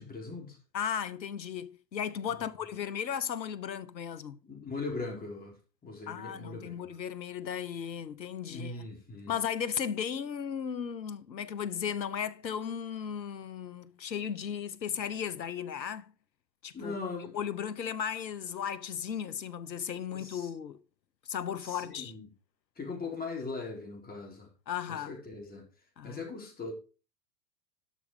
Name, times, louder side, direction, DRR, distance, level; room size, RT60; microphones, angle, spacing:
voice 1, 0.0-0.6 2.3-2.4 4.4-5.6 5.8-6.9 8.5-9.4 16.7-17.4 20.1-20.5 21.6-22.2 22.8-24.5 24.9-25.7 26.0-26.7, left 3 dB, 20° left, 4.5 m, -40 dB
voice 2, 0.7-4.4 6.1-8.9 9.3-16.1 16.6-17.0 17.3-20.8 21.3-22.1 24.7-25.1 26.0-26.2, left 8 dB, 85° left, 1.1 m, -35 dB
12.0 x 6.3 x 5.0 m
hypercardioid pair, 95°, 50 cm